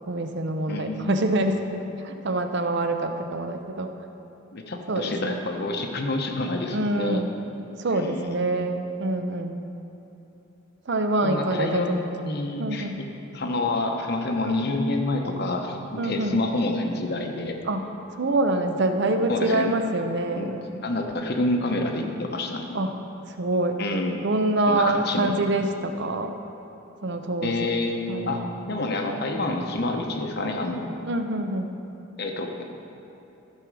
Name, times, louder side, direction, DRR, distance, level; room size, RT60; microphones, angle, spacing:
voice 1, 0.1-3.9 4.9-5.4 6.7-7.3 7.8-9.6 10.9-12.0 12.6-13.0 16.0-16.4 17.6-17.8 18.2-20.6 22.7-23.0 23.4-23.8 24.2-26.3 27.0-27.7 28.1-28.5 31.1-31.7, right 2 dB, 55° right, 6 dB, 0.6 m, -26 dB
voice 2, 0.7-1.2 4.5-7.2 7.9-8.4 11.2-13.1 13.3-17.6 19.3-19.8 20.4-20.6 20.8-22.8 23.8-24.2 24.7-25.3 27.4-30.9 32.2-32.5, left 2 dB, 50° left, 3 dB, 0.9 m, -28 dB
14.0 x 6.1 x 4.7 m, 3.0 s
head